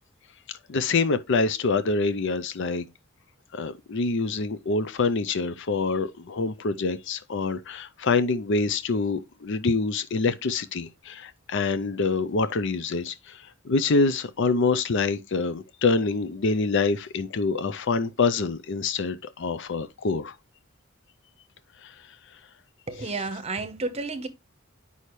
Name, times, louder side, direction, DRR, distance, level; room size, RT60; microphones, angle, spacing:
voice 1, 0.7-2.9 3.5-20.3 21.8-21.9 23.0-23.2, left 4 dB, 55° left, 0.5 m, -26 dB
voice 2, 22.9-24.3, right 3 dB, 30° right, 0.9 m, -31 dB
8.3 x 5.5 x 3.1 m
head